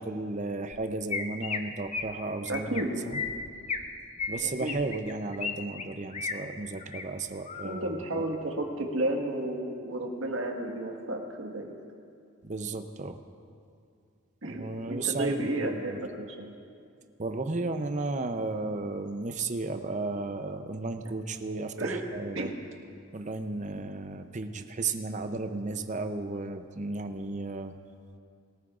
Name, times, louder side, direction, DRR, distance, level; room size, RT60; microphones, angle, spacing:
voice 1, 0.0-3.2 4.3-8.3 12.4-13.2 14.5-16.1 17.2-22.5 23.1-27.7, right 3 dB, 35° right, 7 dB, 0.6 m, -34 dB
Chirp tweet, 0.7-0.8 1.1-1.6 1.9-2.1 2.5-2.8 3.1-3.8 4.2-5.5 5.8-6.3 6.8-7.0 7.5-7.8, left 5 dB, 35° left, 0.7 m, -34 dB
voice 2, 2.5-2.9 4.4-4.7 7.6-11.8 14.4-16.5 21.8-22.0 22.3-22.5, right 1 dB, 75° right, 1 dB, 1.6 m, -32 dB
22.0 x 14.0 x 2.5 m, 2.4 s
head